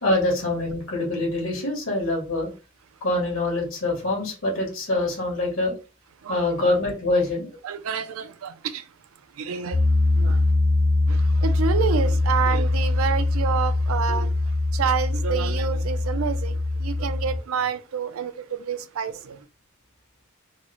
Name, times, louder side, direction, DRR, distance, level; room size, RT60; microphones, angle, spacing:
voice 1, 0.0-2.5 3.0-5.7 6.3-7.5, left 2 dB, 75° left, 1.8 m, -25 dB
voice 2, 6.2-6.7 7.1-7.3 7.6-9.0 9.3-10.5 11.1-19.5, right 7 dB, 80° right, 0.4 m, -29 dB
Piano, 9.7-17.4, left 2 dB, 25° left, 0.4 m, -22 dB
3.9 x 2.0 x 2.9 m
head